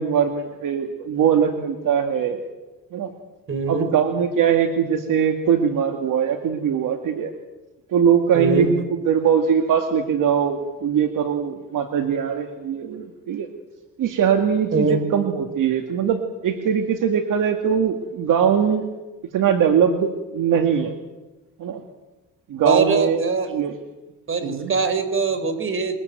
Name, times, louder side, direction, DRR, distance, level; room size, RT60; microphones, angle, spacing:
voice 1, 0.0-2.4 2.9-3.1 3.7-7.3 7.9-13.5 14.0-18.9 19.3-20.9 21.6-21.8 22.5-23.2 23.5-23.7 24.4-24.7, right 7 dB, 60° right, 6 dB, 2.2 m, -21 dB
voice 2, 3.5-3.9 8.3-8.7 14.7-15.0 22.6-23.5 24.3-26.0, right 4 dB, 35° right, 10 dB, 4.2 m, -22 dB
23.0 x 22.0 x 9.4 m, 1.1 s
cardioid pair, 125°, 35 cm